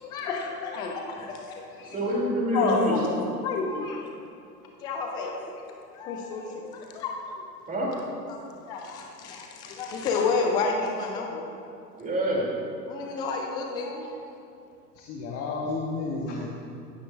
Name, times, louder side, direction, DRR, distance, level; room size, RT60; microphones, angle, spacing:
voice 1, 0.0-2.0 2.5-3.0 3.4-4.0 4.8-5.5 5.9-7.1 8.3-8.4 8.7-11.4 12.9-14.1, left 4 dB, 10° left, 1 dB, 0.3 m, -30 dB
voice 2, 1.9-3.2 7.7-7.9 12.0-12.4, equal, 15° right, -3 dB, 2.8 m, -26 dB
voice 3, 14.9-16.5, left 3 dB, 30° left, -4 dB, 1.2 m, -33 dB
16.0 x 9.6 x 2.5 m, 2.5 s
figure-of-eight pair, 95°, 49 cm